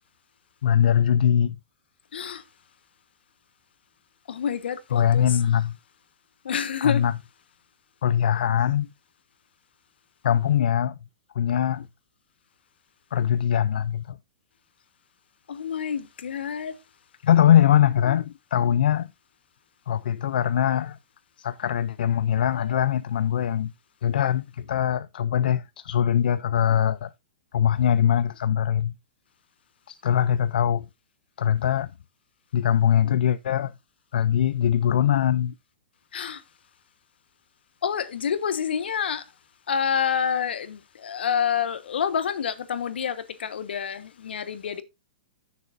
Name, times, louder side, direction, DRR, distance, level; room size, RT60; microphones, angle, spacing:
voice 1, 0.6-1.6 4.9-5.8 6.8-7.1 8.0-8.9 10.2-11.0 11.3-11.9 13.1-14.2 17.2-19.1 19.9-21.0 21.4-23.7 24.0-27.1 27.5-28.9 29.9-30.9 31.4-31.9 32.5-33.7 34.1-35.5, left 9 dB, 60° left, 0.4 m, -22 dB
voice 2, 2.1-2.4 4.3-5.3 6.4-7.0 15.5-16.7 36.1-36.4 37.8-39.2 39.7-44.8, left 7 dB, 80° left, 1.2 m, -28 dB
13.5 x 6.8 x 2.5 m
hypercardioid pair, 175°, 5 cm